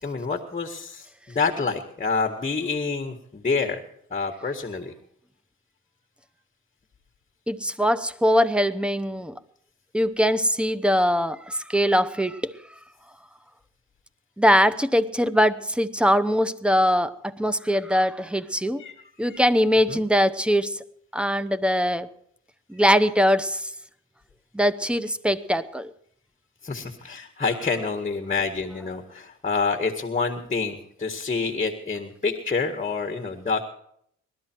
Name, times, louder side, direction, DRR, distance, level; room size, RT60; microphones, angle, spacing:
voice 1, 0.0-3.8 4.1-4.9 18.8-18.9 19.2-19.4 19.9-20.0 26.6-33.6, left 4 dB, 25° left, 5 dB, 1.8 m, -27 dB
voice 2, 7.5-9.3 9.9-12.5 14.4-18.8 19.2-20.8 21.1-22.1 22.7-23.6 24.5-25.9, equal, 5° right, 15 dB, 0.8 m, -22 dB
20.0 x 12.5 x 4.6 m, 0.68 s
cardioid pair, 90°, 30 cm